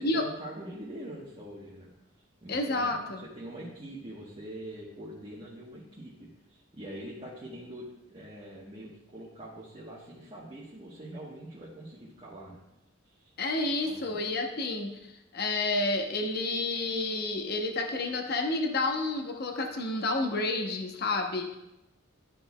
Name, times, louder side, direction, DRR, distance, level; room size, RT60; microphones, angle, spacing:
voice 1, 0.0-1.9 2.4-12.6 13.0-13.3 13.8-14.2, right 1 dB, 30° right, -6 dB, 1.1 m, -44 dB
voice 2, 2.5-3.2 13.4-15.0 15.3-21.6, left 2 dB, 50° left, 3 dB, 0.8 m, -30 dB
11.5 x 4.6 x 2.2 m, 0.90 s
head